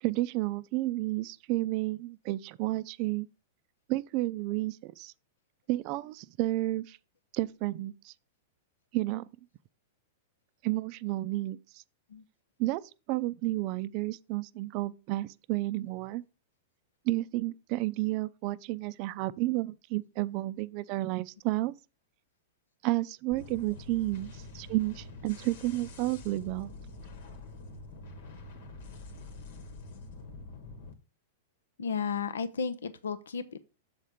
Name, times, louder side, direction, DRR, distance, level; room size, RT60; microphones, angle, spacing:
voice 1, 0.0-3.3 3.9-5.1 5.7-7.0 7.3-8.1 8.9-9.2 10.6-11.8 12.6-12.8 13.1-16.2 17.1-21.7 22.8-26.7, right 18 dB, 50° right, 0.4 m, -31 dB
sound 1, 23.3-30.9, left 3 dB, 70° left, 1.4 m, -46 dB
voice 2, 31.8-33.6, left 6 dB, 85° left, 0.5 m, -34 dB
7.3 x 4.3 x 5.0 m
hypercardioid pair, 115°, 0 cm